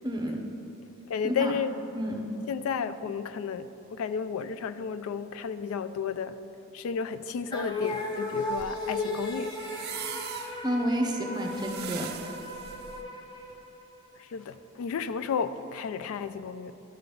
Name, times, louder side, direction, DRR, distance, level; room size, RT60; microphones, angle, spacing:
voice 1, 0.0-0.4 1.2-1.5 1.9-2.3 10.6-12.1, equal, 20° right, 2 dB, 0.7 m, -30 dB
voice 2, 1.1-1.8 2.5-6.4 6.7-9.5 14.2-16.7, left 6 dB, 70° left, 12 dB, 0.3 m, -32 dB
sound 1, 7.5-14.1, left 2 dB, 20° left, 0.6 m, -35 dB
sound 2, 7.9-13.0, right 9 dB, 45° right, 0.4 m, -42 dB
11.5 x 3.9 x 6.8 m, 3.0 s
head